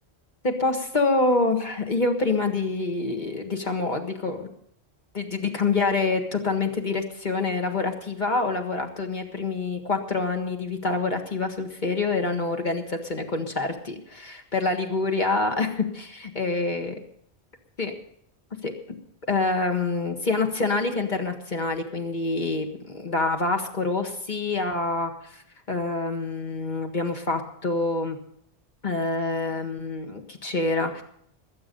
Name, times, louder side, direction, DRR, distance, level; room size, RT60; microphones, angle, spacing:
voice 1, 0.4-4.5 5.1-17.0 17.8-17.9 18.6-18.7 19.3-25.4 25.7-28.2 28.8-31.0, left 3 dB, 45° left, 4 dB, 1.8 m, -26 dB
20.5 x 8.6 x 5.4 m, 0.69 s
omnidirectional pair, 1.1 m